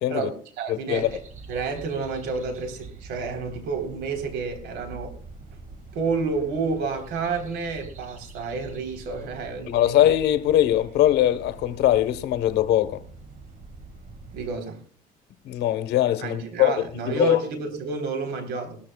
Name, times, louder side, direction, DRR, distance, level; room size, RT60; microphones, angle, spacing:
voice 1, 0.1-1.2 1.5-5.2 5.9-10.1 14.3-14.8 16.2-18.8, right 4 dB, 90° right, 3.6 m, -30 dB
voice 2, 0.7-1.2 9.7-13.0 15.4-16.9 17.1-17.4, left 12 dB, 80° left, 1.1 m, -21 dB
sound 1, 0.9-14.6, right 3 dB, 50° right, 1.8 m, -44 dB
19.5 x 13.5 x 2.3 m
cardioid pair, 110°, 17 cm